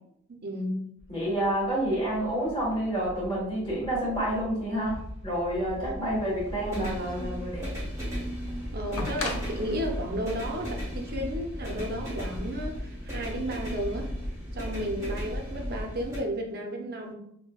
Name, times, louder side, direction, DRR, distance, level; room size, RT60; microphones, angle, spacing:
voice 1, 0.4-0.8 5.8-5.9 8.7-14.1 14.5-17.1, equal, 45° right, 0.6 m, -33 dB
sound 1, 1.0-16.2, equal, 10° right, 0.9 m, -36 dB
voice 2, 1.1-7.7, right 1 dB, 20° left, 1.4 m, -29 dB
sound 2, 7.5-7.6 9.0-11.8 13.0-13.1, left 2 dB, 85° left, 0.7 m, -38 dB
5.5 x 2.1 x 2.3 m
head